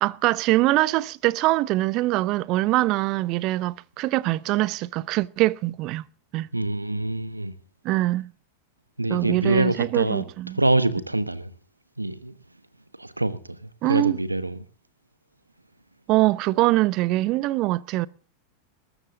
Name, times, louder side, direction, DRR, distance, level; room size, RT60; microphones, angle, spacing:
voice 1, 0.0-6.0 6.3-6.5 7.8-8.3 9.1-10.6 13.8-14.2 16.1-18.1, right 18 dB, 40° right, 0.7 m, -23 dB
voice 2, 6.5-7.5 9.0-10.2 10.5-11.5 12.0-12.3 13.0-13.4 13.9-14.6, right 2 dB, 85° right, 1.2 m, -25 dB
21.5 x 13.5 x 3.9 m
figure-of-eight pair, 90°, 0 cm